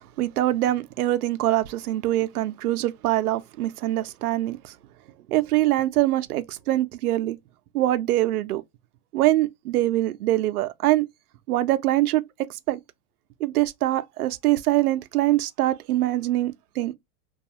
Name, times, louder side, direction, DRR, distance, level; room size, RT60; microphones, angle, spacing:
voice 1, 0.2-4.7 5.3-7.4 7.7-8.6 9.1-11.1 11.5-12.2 12.7-12.8 13.4-16.9, right 15 dB, 90° right, 0.6 m, -23 dB
2.4 x 2.3 x 2.7 m
supercardioid pair, 145°, 44 cm